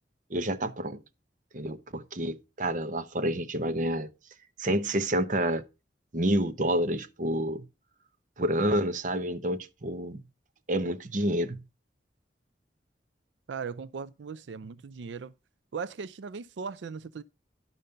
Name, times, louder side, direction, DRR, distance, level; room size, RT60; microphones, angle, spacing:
voice 1, 0.3-1.0 1.5-4.1 4.6-5.6 6.1-7.7 8.4-10.2 10.7-11.6, right 1 dB, 45° right, 0.8 m, -28 dB
voice 2, 13.5-15.3 15.7-17.2, right 5 dB, 90° right, 0.4 m, -38 dB
10.5 x 5.2 x 5.6 m
head